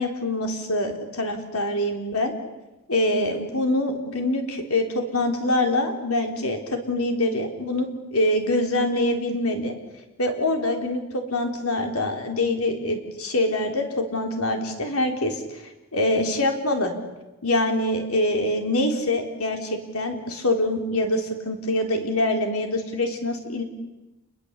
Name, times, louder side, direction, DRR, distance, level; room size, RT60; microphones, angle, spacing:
voice 1, 0.0-2.3 2.9-9.7 10.2-15.4 15.9-16.9 17.4-23.6, left 1 dB, 90° left, 4 dB, 4.0 m, -24 dB
28.5 x 21.5 x 8.3 m, 1.0 s
head